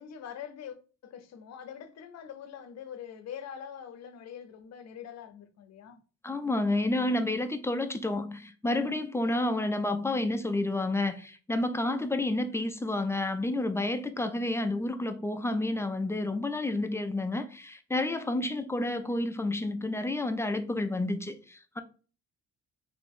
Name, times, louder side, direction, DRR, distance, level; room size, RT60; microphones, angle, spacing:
voice 1, 0.0-6.0, left 8 dB, 60° left, 0.6 m, -44 dB
voice 2, 6.2-21.8, left 2 dB, 10° left, 0.3 m, -30 dB
3.0 x 2.5 x 3.6 m
cardioid pair, 90°, 30 cm